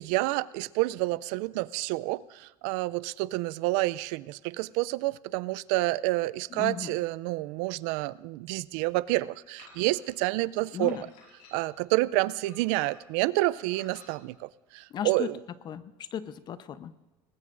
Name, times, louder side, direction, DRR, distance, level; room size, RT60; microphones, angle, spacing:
voice 1, 0.0-11.0 11.5-15.4, right 19 dB, 75° right, 19 dB, 0.4 m, -29 dB
voice 2, 6.5-7.0 10.7-11.0 14.9-15.3 15.6-16.9, left 9 dB, 45° left, 13 dB, 0.9 m, -36 dB
sound 1, 9.6-10.2 10.9-11.8 12.4-13.2 13.7-14.1, left 4 dB, 70° left, 5.4 m, -54 dB
20.5 x 19.5 x 2.6 m, 1.2 s
supercardioid pair, 105°, 11 cm